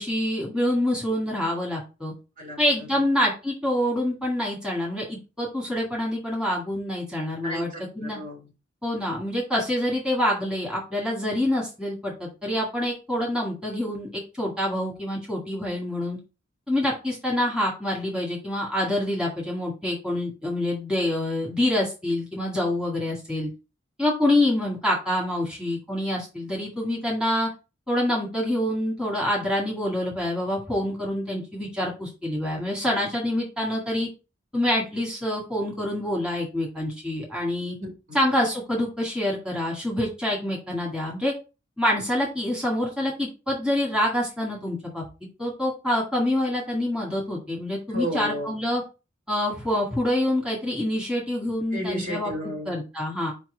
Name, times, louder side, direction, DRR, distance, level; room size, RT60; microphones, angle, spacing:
voice 1, 0.0-2.1 2.6-7.7 8.0-8.2 8.8-16.2 16.7-23.5 24.0-27.5 27.9-34.1 34.5-37.8 38.1-41.3 41.8-45.0 45.4-48.8 49.3-52.3 52.7-53.3, left 1 dB, 5° right, 2.0 m, -26 dB
voice 2, 7.4-8.5 37.8-38.2 47.9-48.6 51.7-52.8, equal, 45° right, 3.0 m, -33 dB
5.2 x 4.6 x 5.1 m
head